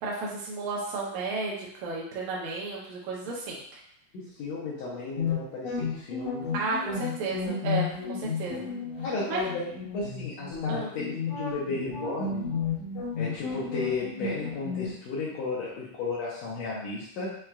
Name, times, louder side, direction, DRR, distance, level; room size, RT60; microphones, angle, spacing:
voice 1, 0.0-3.8 6.5-7.9 8.2-8.7 9.3-9.4 10.7-10.9, right 3 dB, 75° right, -4 dB, 1.9 m, -32 dB
voice 2, 4.1-6.4 9.0-12.5 13.2-17.3, left 3 dB, 85° left, -7 dB, 1.5 m, -34 dB
sound 1, 5.2-14.9, left 5 dB, 70° left, 1.7 m, -32 dB
5.8 x 2.3 x 2.2 m, 0.67 s
omnidirectional pair, 3.8 m